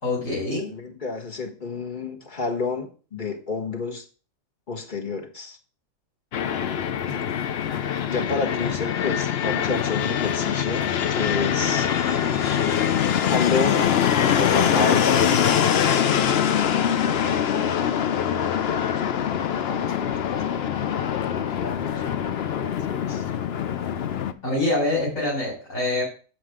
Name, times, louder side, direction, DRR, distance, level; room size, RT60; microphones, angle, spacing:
voice 1, 0.0-0.7 24.4-26.0, left 2 dB, 75° left, -4 dB, 4.3 m, -25 dB
voice 2, 0.7-4.0 4.7-5.6 7.1-7.3 8.0-10.8 11.1-11.9 13.3-15.2 16.1-23.3, left 4 dB, 40° left, 3 dB, 1.5 m, -31 dB
Fixed-wing aircraft airplane, 6.3-24.3, left 8 dB, 55° left, 0.8 m, -23 dB
7.6 x 6.5 x 5.0 m, 0.37 s
omnidirectional pair, 1.4 m